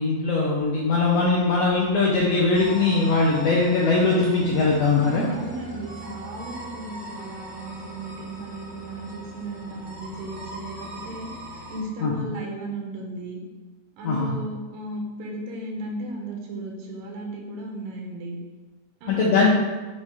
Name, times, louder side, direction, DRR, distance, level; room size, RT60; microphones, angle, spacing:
voice 1, 0.0-5.2 12.0-12.1 14.0-14.3 19.1-19.5, left 3 dB, 75° left, -4 dB, 1.5 m, -21 dB
sound 1, 2.5-11.8, equal, 50° right, 1.6 m, -40 dB
voice 2, 5.0-11.3 11.7-13.4 14.0-18.4 19.0-19.5, right 2 dB, 90° right, 0 dB, 2.7 m, -35 dB
6.5 x 3.2 x 4.8 m, 1.3 s
omnidirectional pair, 3.7 m